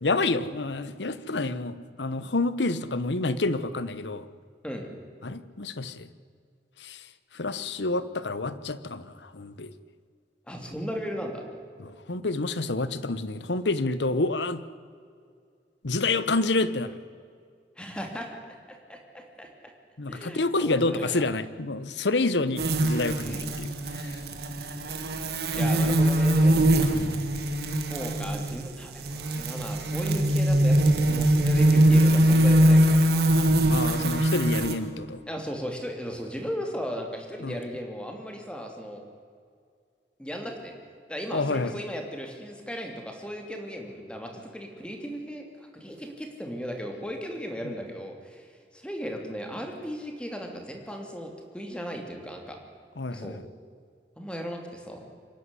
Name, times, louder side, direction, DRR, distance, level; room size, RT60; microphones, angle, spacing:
voice 1, 0.0-4.3 5.2-6.1 6.8-7.0 7.3-9.7 11.8-14.6 15.8-16.9 20.0-24.2 26.9-27.3 33.7-35.2 37.4-37.6 41.3-41.7 47.6-47.7 53.0-53.4, left 2 dB, 80° left, 14 dB, 1.0 m, -28 dB
voice 2, 10.5-11.4 17.8-18.4 18.7-19.5 20.1-21.2 23.2-23.4 25.5-26.7 27.8-33.4 33.7-34.0 35.3-39.0 40.2-40.7 41.1-52.6 53.1-53.4 54.2-55.0, equal, 5° left, 3 dB, 2.8 m, -36 dB
sound 1, 22.6-34.7, right 1 dB, 60° right, 2.0 m, -22 dB
25.5 x 11.0 x 9.8 m, 2.2 s
head